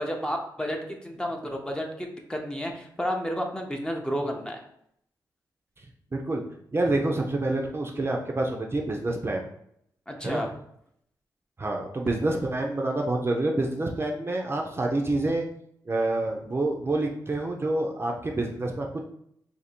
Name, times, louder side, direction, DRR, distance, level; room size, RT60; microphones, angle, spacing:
voice 1, 0.0-4.6 10.1-10.5, equal, 10° left, 1 dB, 0.7 m, -31 dB
voice 2, 6.1-6.4 6.7-9.4 10.2-10.5 11.6-15.4 15.9-19.0, right 2 dB, 30° right, 1 dB, 0.5 m, -27 dB
2.7 x 2.6 x 4.3 m, 0.70 s
cardioid pair, 65°, 8 cm